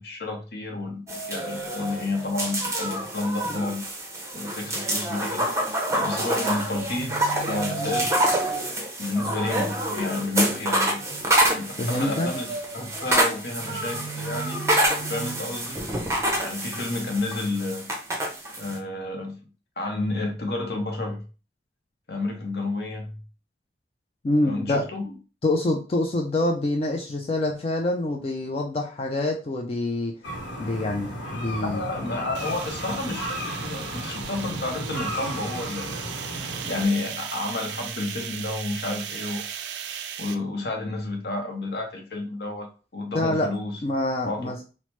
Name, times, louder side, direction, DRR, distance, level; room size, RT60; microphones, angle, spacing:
voice 1, 0.0-3.8 4.3-5.5 5.9-8.2 9.0-11.0 11.5-14.6 15.1-15.8 16.4-17.9 18.6-19.4 19.8-21.2 22.1-23.2 24.4-25.1 31.6-36.0 36.4-39.4 40.2-42.7 42.9-43.8 44.3-44.5, left 2 dB, 60° left, 2 dB, 0.7 m, -30 dB
sound 1, 1.1-18.8, right 1 dB, 15° right, 0.6 m, -27 dB
voice 2, 11.8-12.3 24.2-24.8 25.4-30.1 30.6-31.8 43.1-43.5 43.8-44.6, left 2 dB, 30° left, 1 dB, 0.3 m, -26 dB
sound 2, 30.2-36.9, equal, 90° left, 0.8 m, -34 dB
sound 3, 32.3-40.3, right 9 dB, 75° right, 0.3 m, -37 dB
3.1 x 2.0 x 3.0 m, 0.35 s
head